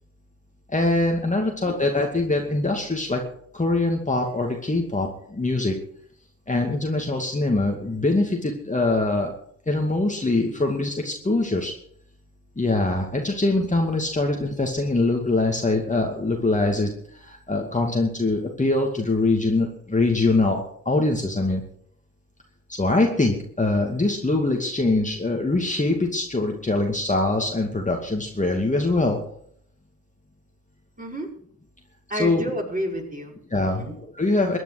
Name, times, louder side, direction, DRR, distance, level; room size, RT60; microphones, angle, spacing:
voice 1, 0.7-3.2 3.5-5.8 6.5-9.3 9.7-11.7 12.6-21.6 22.7-29.2 32.1-32.4 33.5-34.6, left 2 dB, 15° left, 1 dB, 2.4 m, -23 dB
voice 2, 1.4-1.7 31.0-31.3 32.1-33.3 33.8-33.9, equal, 20° right, -1 dB, 5.6 m, -30 dB
23.0 x 9.2 x 5.0 m, 0.66 s
hypercardioid pair, 45°, 45 cm